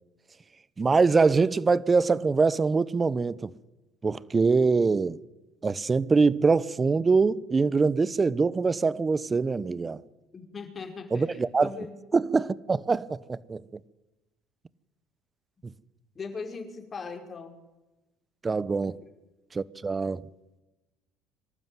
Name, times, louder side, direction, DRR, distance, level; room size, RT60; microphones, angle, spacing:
voice 1, 0.8-3.5 4.0-5.2 5.6-10.0 11.1-11.7 12.1-13.6 18.4-19.0 19.5-20.2, right 4 dB, 25° right, 1.0 m, -24 dB
voice 2, 10.3-12.0 16.1-17.5 19.0-19.1, left 4 dB, 35° left, 5.2 m, -39 dB
25.0 x 12.5 x 9.4 m
hypercardioid pair, 75°, 0 cm